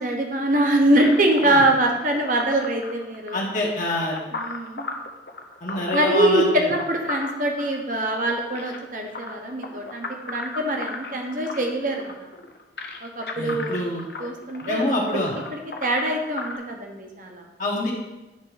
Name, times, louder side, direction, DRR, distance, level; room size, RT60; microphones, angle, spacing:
voice 1, 0.0-3.4 4.3-4.9 5.9-12.3 13.0-13.8 14.2-14.8 15.1-15.2 15.5-17.4, right 1 dB, 45° right, 2 dB, 1.1 m, -23 dB
sound 1, 1.0-16.6, left 3 dB, 60° left, 0.7 m, -36 dB
voice 2, 3.3-4.2 5.6-6.6 13.4-14.0 14.6-15.3 17.6-17.9, left 1 dB, 45° left, -3 dB, 1.3 m, -25 dB
9.5 x 3.7 x 5.0 m, 1.0 s
head